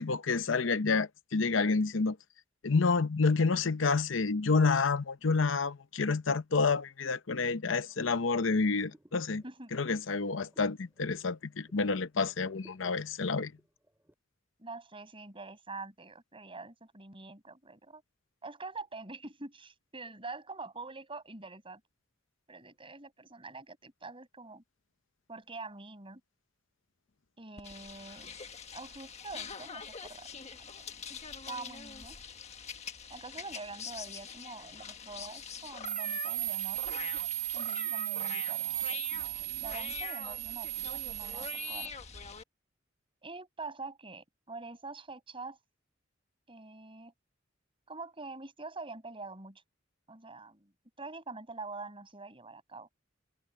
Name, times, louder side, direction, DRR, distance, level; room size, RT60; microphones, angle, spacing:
voice 1, 0.0-2.2 2.6-9.4 9.7-13.5, left 4 dB, 75° left, 0.8 m, -29 dB
sound 1, 7.6-12.0 12.3-14.1, right 1 dB, 10° right, 3.7 m, -62 dB
voice 2, 14.6-18.0 18.4-21.8 22.5-24.6 25.3-26.2 27.4-28.4 28.7-31.2 31.5-32.2 33.1-36.8 37.5-41.9 43.2-45.6 46.5-47.1 47.9-49.6 50.1-50.7 51.0-52.9, right 3 dB, 30° right, 5.8 m, -45 dB
sound 2, 27.6-42.4, left 6 dB, 35° left, 1.4 m, -44 dB
sound 3, 35.9-41.9, right 15 dB, 50° right, 1.5 m, -36 dB
head